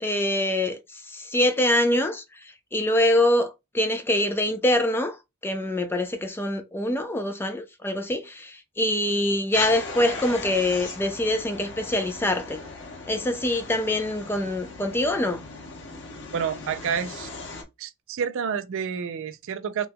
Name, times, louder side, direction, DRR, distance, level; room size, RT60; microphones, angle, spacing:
voice 1, 0.0-5.2 5.4-12.6 13.1-15.4, left 1 dB, 10° left, 0.4 m, -24 dB
sound 1, 9.5-17.6, left 3 dB, 55° left, 1.0 m, -38 dB
voice 2, 16.3-17.3 17.8-19.9, right 7 dB, 60° right, 0.4 m, -29 dB
2.9 x 2.2 x 3.4 m
head